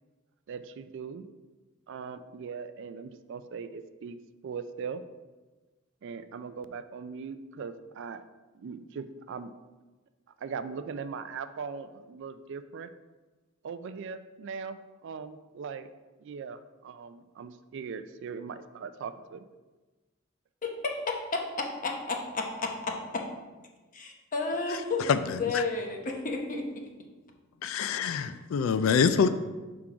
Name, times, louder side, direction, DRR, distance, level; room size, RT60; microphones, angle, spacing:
voice 1, 0.5-1.3 1.9-4.2 4.4-5.0 6.0-8.2 8.5-9.5 10.4-12.9 13.6-15.9 16.2-19.5, right 5 dB, 65° right, 12 dB, 0.3 m, -40 dB
voice 2, 20.6-23.2 23.9-26.8, left 3 dB, 40° left, 1 dB, 0.9 m, -32 dB
voice 3, 25.1-25.6 27.6-29.3, left 6 dB, 70° left, 11 dB, 0.3 m, -25 dB
5.9 x 3.7 x 4.9 m, 1.2 s
head